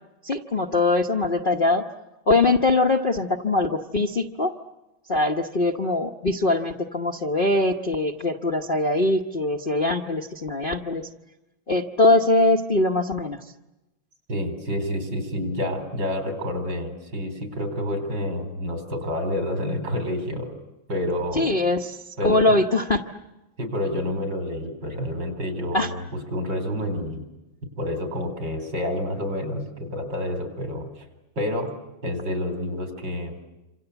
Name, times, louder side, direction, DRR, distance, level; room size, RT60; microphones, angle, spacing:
voice 1, 0.2-1.8 2.3-4.5 5.1-11.1 11.7-13.5 21.3-22.0 22.2-23.0 25.7-25.9, left 2 dB, 35° left, 2 dB, 0.9 m, -22 dB
voice 2, 14.3-20.5 20.9-21.5 22.2-22.6 23.6-27.2 27.6-31.1 31.4-31.7 32.0-33.4, left 1 dB, 60° right, 7 dB, 4.8 m, -28 dB
27.5 x 26.5 x 8.1 m, 1.0 s
omnidirectional pair, 2.2 m